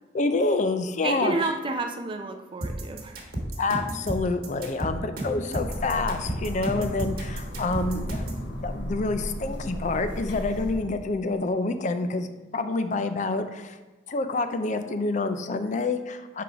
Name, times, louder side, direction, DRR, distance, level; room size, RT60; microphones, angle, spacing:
voice 1, 0.1-1.3 3.6-13.8 14.1-16.4, left 3 dB, 45° left, 9 dB, 0.4 m, -27 dB
voice 2, 1.0-3.2 6.7-7.0, right 3 dB, 30° right, 5 dB, 0.4 m, -30 dB
sound 1, 2.6-8.4, right 1 dB, 60° right, 1.2 m, -32 dB
sound 2, 5.6-10.8, equal, 80° left, 0.9 m, -35 dB
4.6 x 3.9 x 5.7 m, 1.2 s
head